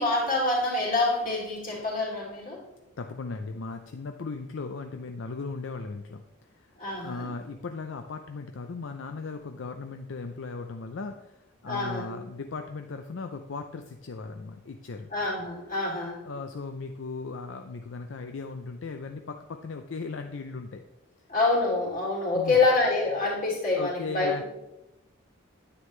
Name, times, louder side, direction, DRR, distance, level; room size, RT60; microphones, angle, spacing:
voice 1, 0.0-2.6 6.8-7.2 11.6-12.1 15.1-16.2 21.3-24.4, left 3 dB, 40° left, -4 dB, 3.0 m, -26 dB
voice 2, 3.0-6.2 6.6-6.7 7.0-15.1 16.2-20.8 22.3-22.6 23.7-24.4, left 4 dB, 65° left, 6 dB, 0.5 m, -37 dB
9.8 x 8.9 x 3.2 m, 0.97 s
head